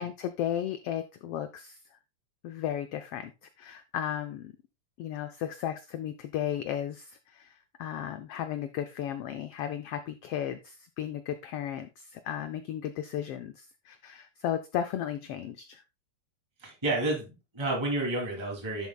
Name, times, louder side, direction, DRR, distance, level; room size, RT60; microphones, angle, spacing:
voice 1, 0.0-2.0 2.4-3.3 3.6-4.5 5.0-15.8, left 10 dB, 85° left, 9 dB, 1.3 m, -35 dB
voice 2, 16.6-18.9, right 2 dB, 10° right, -1 dB, 2.6 m, -30 dB
11.0 x 7.2 x 2.3 m, 0.27 s
omnidirectional pair, 3.3 m